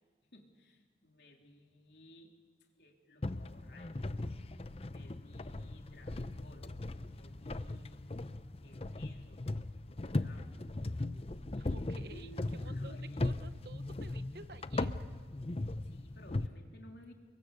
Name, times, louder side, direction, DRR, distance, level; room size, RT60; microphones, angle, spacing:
voice 1, 0.3-2.4 2.7-4.1 4.5-6.7 7.0-8.3 8.6-9.5 9.8-10.7 11.9-13.2 15.8-17.1, left 1 dB, 75° left, 2 dB, 3.2 m, -58 dB
sound 1, 3.2-16.5, left 2 dB, 35° left, 0.6 m, -38 dB
voice 2, 11.5-15.0, right 3 dB, 65° right, 12 dB, 0.9 m, -53 dB
29.5 x 23.0 x 6.7 m, 1.5 s
head